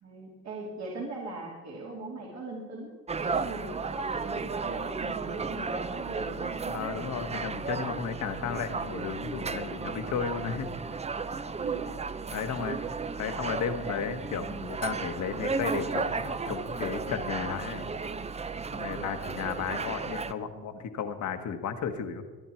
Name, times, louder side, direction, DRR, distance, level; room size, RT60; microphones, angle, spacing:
voice 1, 0.0-2.9 3.2-6.7 11.5-11.9 12.3-13.1, right 2 dB, 65° right, -2 dB, 2.9 m, -40 dB
sound 1, 3.1-20.3, right 4 dB, 20° right, 0.6 m, -34 dB
voice 2, 6.7-10.9 12.3-12.8 13.2-17.9 18.7-22.2, left 7 dB, 70° left, 8 dB, 1.4 m, -34 dB
21.0 x 10.0 x 4.5 m, 1.3 s
cardioid pair, 90°, 30 cm